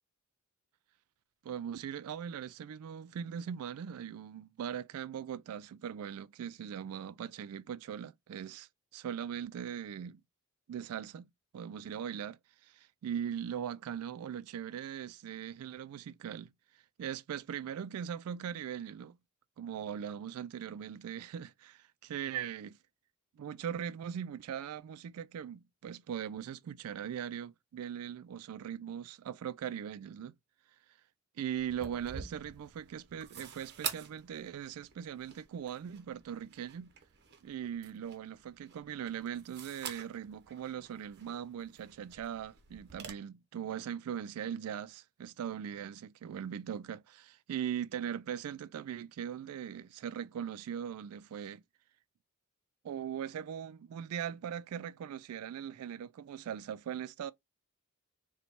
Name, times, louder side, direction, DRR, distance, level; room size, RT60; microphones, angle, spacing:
voice 1, 1.4-10.2 10.7-16.5 17.0-19.2 19.6-22.8 23.4-30.3 31.4-36.9 37.4-51.6 52.8-57.3, right 8 dB, 85° right, 0.3 m, -40 dB
sound 1, 31.6-43.1, right 7 dB, 50° right, 0.8 m, -47 dB
4.0 x 2.2 x 4.3 m
head